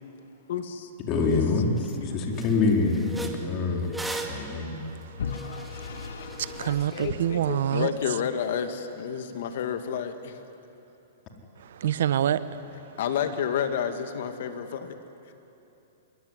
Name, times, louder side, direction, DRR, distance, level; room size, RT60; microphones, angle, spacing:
voice 1, 0.5-0.9 1.2-2.2 6.6-10.4 13.0-14.9, left 8 dB, 65° left, 2.5 m, -31 dB
voice 2, 1.1-1.7 2.1-3.9 4.3-4.8, left 4 dB, 35° left, 4.3 m, -25 dB
sound 1, 1.3-1.4 1.8-2.0 2.3-7.1, right 2 dB, 5° right, 2.3 m, -39 dB
voice 3, 4.1-8.2 11.6-13.0, right 10 dB, 70° right, 1.2 m, -29 dB
Vehicle / Engine, 5.2-8.2, left 5 dB, 85° left, 1.9 m, -38 dB
26.0 x 22.5 x 10.0 m
hypercardioid pair, 140°, 0 cm